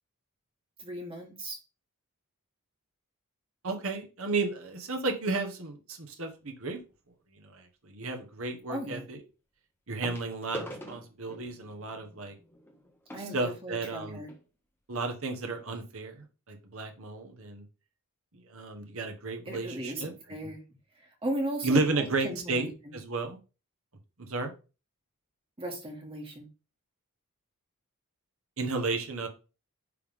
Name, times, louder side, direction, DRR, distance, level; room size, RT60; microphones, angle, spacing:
voice 1, 0.8-1.6 8.7-9.1 13.1-14.3 19.4-20.6 20.9-22.9 25.6-26.5, right 1 dB, 25° right, 0 dB, 1.6 m, -37 dB
voice 2, 3.6-6.8 7.4-9.2 9.9-12.4 13.3-14.2 14.9-17.6 18.5-20.1 21.6-23.4 24.2-24.5 28.6-29.3, right 3 dB, 65° right, 4 dB, 1.4 m, -33 dB
sound 1, 6.4-6.7 8.4-8.5 10.0-14.4 15.2-15.3 15.5-15.7 16.2-16.3, equal, 10° left, 1.2 m, -45 dB
9.9 x 3.5 x 3.7 m, 0.32 s
head